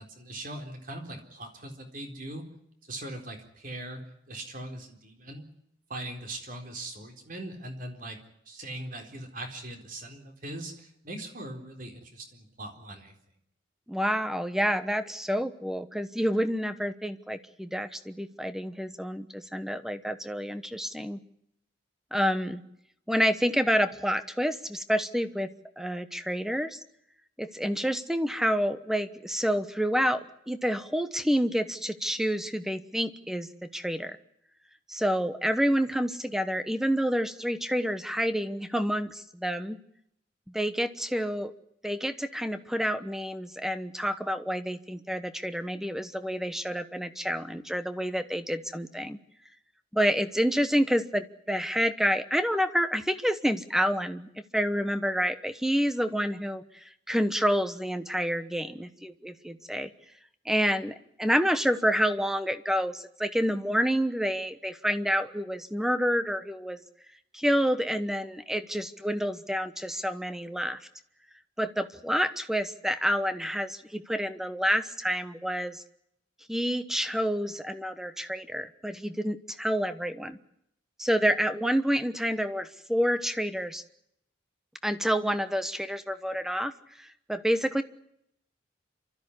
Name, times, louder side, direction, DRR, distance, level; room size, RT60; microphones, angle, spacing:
voice 1, 0.0-2.5 2.8-4.0 4.3-5.4 5.9-8.2 8.5-13.1, right 1 dB, 45° right, 4 dB, 4.1 m, -40 dB
voice 2, 13.9-21.2 22.1-22.6 23.1-25.5 25.8-26.8 27.4-34.2 34.9-39.8 40.5-41.5 41.8-49.2 49.9-56.6 57.1-59.9 60.4-66.8 67.3-70.8 71.6-75.8 76.5-80.4 81.0-83.8 84.8-86.7 87.0-87.8, equal, ahead, 11 dB, 1.0 m, -28 dB
28.0 x 13.5 x 9.9 m, 0.75 s
head